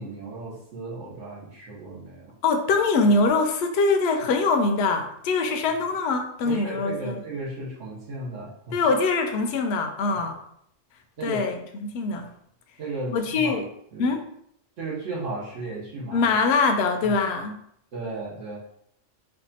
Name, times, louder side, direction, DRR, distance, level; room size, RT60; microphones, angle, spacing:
voice 1, 0.0-2.3 6.4-8.8 10.1-10.2 11.2-11.4 12.8-13.5 13.9-14.1 14.8-16.3 17.0-17.1 17.9-18.6, right 3 dB, 75° right, -5 dB, 1.4 m, -35 dB
voice 2, 2.4-7.2 8.7-10.4 11.2-12.3 13.1-13.6 14.0-14.2 16.1-17.6, left 3 dB, 65° left, 5 dB, 0.7 m, -23 dB
3.4 x 2.3 x 4.0 m, 0.71 s
omnidirectional pair, 1.3 m